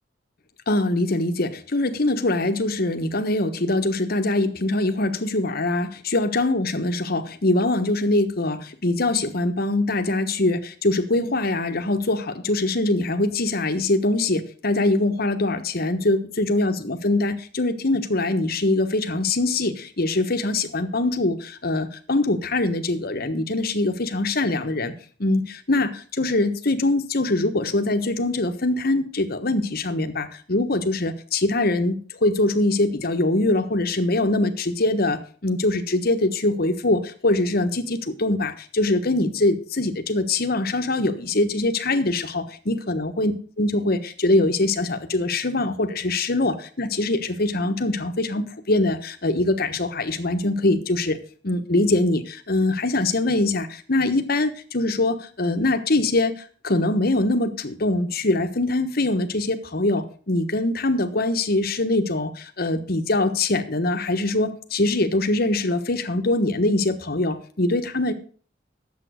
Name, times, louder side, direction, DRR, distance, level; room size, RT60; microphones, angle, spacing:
voice 1, 0.7-24.9 25.2-43.3 43.6-51.2 51.4-56.3 56.6-68.1, left 2 dB, 55° left, 7 dB, 1.3 m, -23 dB
10.5 x 7.7 x 6.4 m, 0.43 s
head